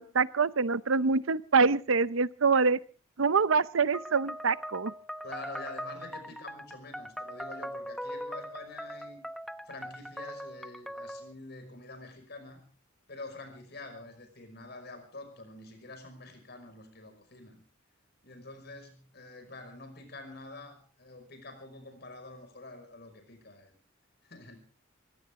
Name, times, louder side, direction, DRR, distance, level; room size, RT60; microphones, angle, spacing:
voice 1, 0.0-2.8 3.2-4.9, right 4 dB, 80° right, 17 dB, 0.7 m, -25 dB
sound 1, 3.9-11.3, equal, ahead, 0.7 m, -41 dB
voice 2, 5.2-9.2 9.7-12.6 13.1-17.6 18.2-23.7 24.2-24.6, left 2 dB, 55° left, 7 dB, 5.6 m, -46 dB
23.0 x 16.5 x 3.7 m, 0.38 s
head